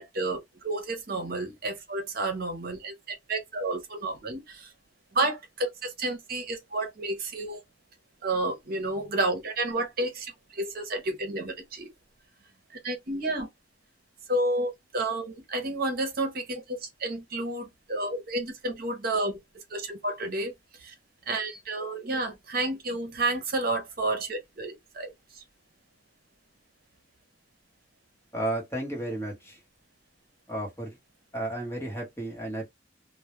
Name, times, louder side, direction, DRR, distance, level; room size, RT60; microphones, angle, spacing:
voice 1, 0.0-4.7 5.1-7.6 8.2-11.9 12.8-13.5 14.3-19.4 19.7-20.5 20.8-20.9 21.3-25.4, right 2 dB, 55° right, 0.7 m, -31 dB
voice 2, 28.3-29.6 30.5-31.0 31.3-32.7, right 1 dB, 15° left, 0.9 m, -33 dB
2.3 x 2.0 x 2.9 m
head